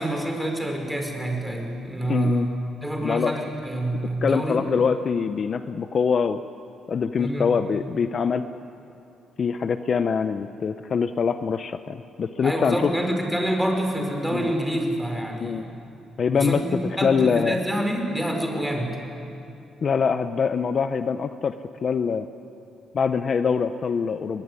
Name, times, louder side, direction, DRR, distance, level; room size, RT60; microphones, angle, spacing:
voice 1, 0.0-2.5 2.8-4.6 7.2-7.5 12.4-15.7 16.3-19.0, right 1 dB, ahead, 2 dB, 5.3 m, -27 dB
voice 2, 2.1-2.5 3.0-3.3 4.2-6.4 6.9-8.4 9.4-12.9 14.3-14.5 15.4-15.6 16.2-16.6 17.0-17.6 19.8-21.6 21.8-22.2 22.9-24.4, left 6 dB, 50° left, 10 dB, 0.8 m, -24 dB
23.0 x 21.0 x 9.8 m, 2.8 s
cardioid pair, 90°, 0 cm